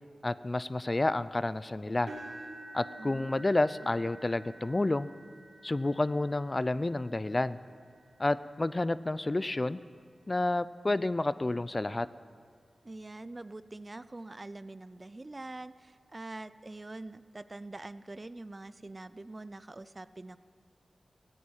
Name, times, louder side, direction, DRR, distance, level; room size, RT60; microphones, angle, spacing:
voice 1, 0.2-2.1 2.7-5.1 5.6-7.6 8.2-9.8 10.3-12.1, left 2 dB, 30° left, 16 dB, 0.4 m, -30 dB
sound 1, 2.1-10.1 10.7-11.0 11.4-11.5 12.9-13.0, right 2 dB, 75° right, 2.8 m, -50 dB
voice 2, 3.0-3.4 12.8-20.4, right 2 dB, 35° right, 15 dB, 0.4 m, -44 dB
14.5 x 9.4 x 8.7 m, 2.1 s
cardioid pair, 60°, 0 cm